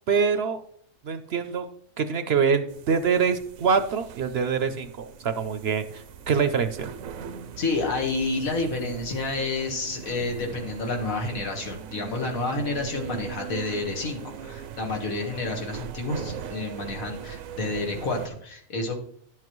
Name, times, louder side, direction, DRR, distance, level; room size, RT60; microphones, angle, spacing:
voice 1, 0.1-0.6 1.0-1.7 2.0-6.9, right 6 dB, 60° right, 10 dB, 0.8 m, -25 dB
sound 1, 2.7-18.3, right 8 dB, 80° right, 1.0 m, -40 dB
voice 2, 7.6-19.0, left 3 dB, 85° left, 2 dB, 2.0 m, -29 dB
11.0 x 7.6 x 3.1 m, 0.63 s
omnidirectional pair, 1.4 m